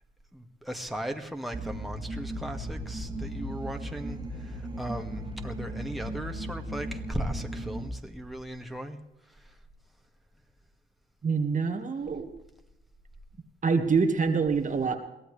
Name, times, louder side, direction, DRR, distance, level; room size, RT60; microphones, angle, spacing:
voice 1, 0.3-9.0 9.3-9.6, right 1 dB, ahead, 3 dB, 2.0 m, -37 dB
sound 1, 1.5-7.9, right 1 dB, 25° right, 2.3 m, -36 dB
voice 2, 11.2-12.3 13.6-15.0, right 5 dB, 40° right, 5 dB, 1.8 m, -25 dB
22.5 x 16.0 x 3.3 m, 0.89 s
cardioid pair, 90°, 20 cm